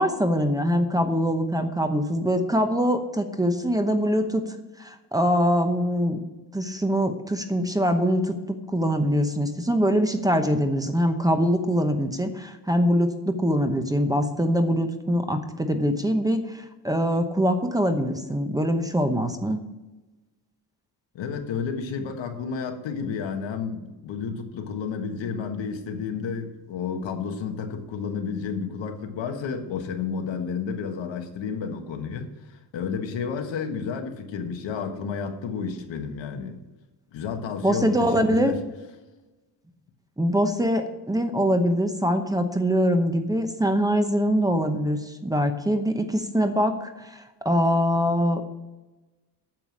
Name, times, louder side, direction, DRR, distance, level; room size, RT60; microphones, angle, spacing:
voice 1, 0.0-4.4 4.8-6.2 6.5-19.6 37.6-38.5 40.2-48.4, equal, 10° right, 6 dB, 0.9 m, -23 dB
voice 2, 21.1-36.6 37.1-38.6, left 6 dB, 85° left, 5 dB, 1.5 m, -31 dB
9.1 x 7.0 x 7.3 m, 1.1 s
cardioid pair, 140°, 44 cm